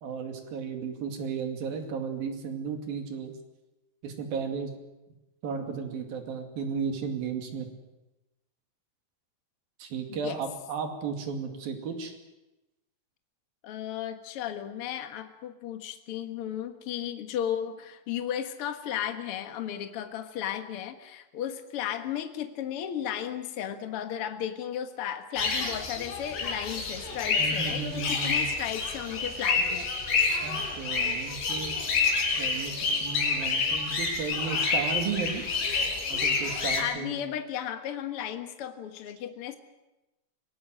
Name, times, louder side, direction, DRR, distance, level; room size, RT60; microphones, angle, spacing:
voice 1, 0.0-3.3 4.0-4.7 5.4-7.7 9.8-12.1 27.4-28.5 30.4-31.8 32.4-32.7 33.0-35.5 36.1-37.2, right 5 dB, 60° right, 4 dB, 4.0 m, -34 dB
voice 2, 10.1-10.4 13.6-29.9 36.7-39.5, left 10 dB, 65° left, 7 dB, 1.4 m, -34 dB
sound 1, 25.4-36.8, left 4 dB, 90° left, 6.2 m, -28 dB
25.5 x 18.5 x 7.6 m, 1.0 s
omnidirectional pair, 4.8 m